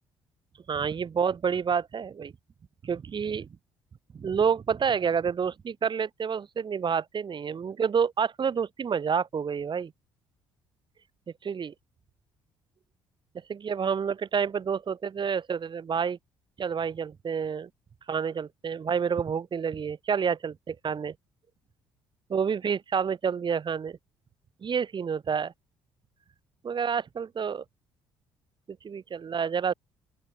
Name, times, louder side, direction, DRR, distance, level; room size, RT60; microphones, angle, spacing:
voice 1, 0.7-2.3 2.8-3.5 4.2-9.9 11.4-11.7 13.5-16.2 16.6-17.7 18.1-21.1 22.3-24.0 24.6-25.5 26.6-27.6 28.8-29.7, right 6 dB, 40° right, 2.0 m, -28 dB
open air
hypercardioid pair, 50°, 12 cm